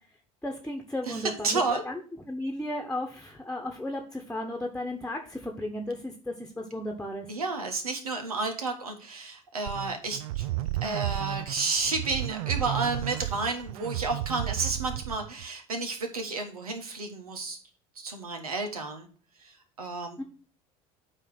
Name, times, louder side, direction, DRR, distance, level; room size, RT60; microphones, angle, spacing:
voice 1, 0.4-2.0 2.3-7.3 20.2-20.3, left 1 dB, 5° left, 3 dB, 1.3 m, -34 dB
voice 2, 1.1-1.8 7.3-10.5 10.8-17.6 18.0-19.1 19.4-20.2, right 3 dB, 90° right, 5 dB, 1.5 m, -31 dB
sound 1, 9.7-15.5, right 16 dB, 75° right, 0.4 m, -33 dB
9.0 x 3.3 x 6.2 m, 0.41 s
hypercardioid pair, 70°, 18 cm